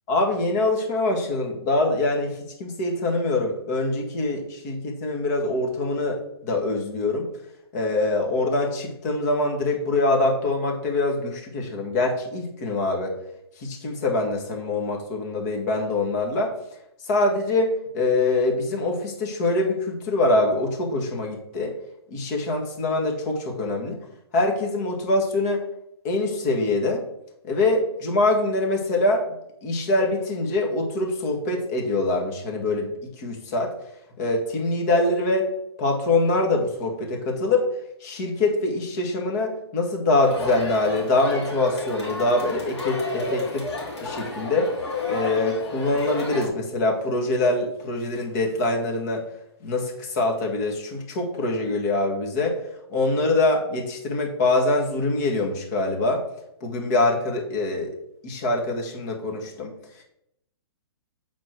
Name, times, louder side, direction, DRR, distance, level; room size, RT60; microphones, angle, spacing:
voice 1, 0.1-7.3 7.7-13.1 13.6-16.6 17.0-21.7 22.1-24.0 24.3-25.6 26.0-27.0 27.4-29.3 29.6-33.7 34.2-35.5 35.8-37.7 38.0-43.7 44.0-44.7 45.1-49.3 49.6-52.6 52.9-56.2 56.6-58.0 58.2-59.7, left 2 dB, 40° left, 1 dB, 1.8 m, -24 dB
Crowd, 40.2-46.5, left 2 dB, 85° left, 3.0 m, -32 dB
7.9 x 4.2 x 4.5 m, 0.79 s
hypercardioid pair, 140°, 14 cm